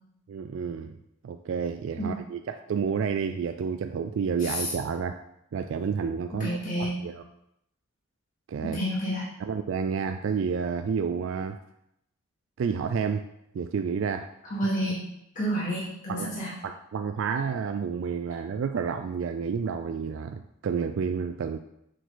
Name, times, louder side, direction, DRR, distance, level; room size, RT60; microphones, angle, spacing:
voice 1, 0.3-1.0 1.2-5.2 5.5-6.5 6.8-7.2 8.5-8.8 9.4-11.6 12.6-13.3 13.5-14.3 16.1-16.3 16.6-21.6, right 6 dB, 60° right, 7 dB, 0.3 m, -30 dB
voice 2, 4.4-4.7 6.4-7.0 8.7-9.3 14.4-15.1 15.4-16.5, equal, 35° left, -8 dB, 1.9 m, -29 dB
6.3 x 4.6 x 3.9 m, 0.79 s
head